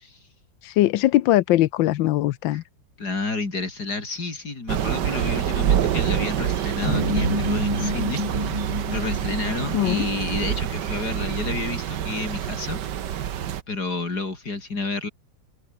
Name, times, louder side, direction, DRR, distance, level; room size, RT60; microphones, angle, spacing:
voice 1, 0.6-2.6 9.7-10.0, left 15 dB, 90° left, 1.5 m, -20 dB
voice 2, 3.0-8.6 8.9-12.8 13.7-15.1, left 3 dB, 55° left, 4.4 m, -30 dB
Thunder / Rain, 4.7-13.6, right 10 dB, 65° right, 1.7 m, -26 dB
sound 1, 6.8-11.4, left 1 dB, 40° left, 7.3 m, -29 dB
open air
omnidirectional pair, 2.0 m